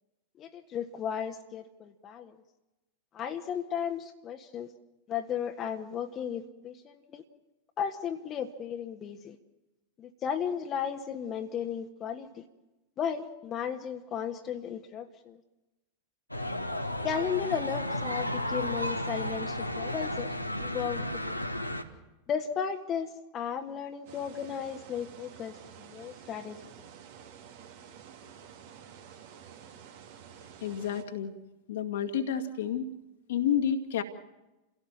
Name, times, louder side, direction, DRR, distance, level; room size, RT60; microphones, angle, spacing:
voice 1, 0.4-2.4 3.1-4.7 5.1-7.2 7.8-9.4 10.0-12.4 13.0-15.4 17.0-20.3 20.6-21.4 22.3-26.6, left 8 dB, 30° left, 4 dB, 1.6 m, -35 dB
sound 1, 16.3-21.8, left 1 dB, 90° left, 1.7 m, -33 dB
sound 2, 24.1-31.0, right 8 dB, 50° right, 2.5 m, -50 dB
voice 2, 30.6-31.3 31.7-32.9 33.3-34.0, left 8 dB, 60° left, 5 dB, 2.1 m, -30 dB
28.5 x 17.0 x 7.3 m, 1.0 s
figure-of-eight pair, 90°, 0 cm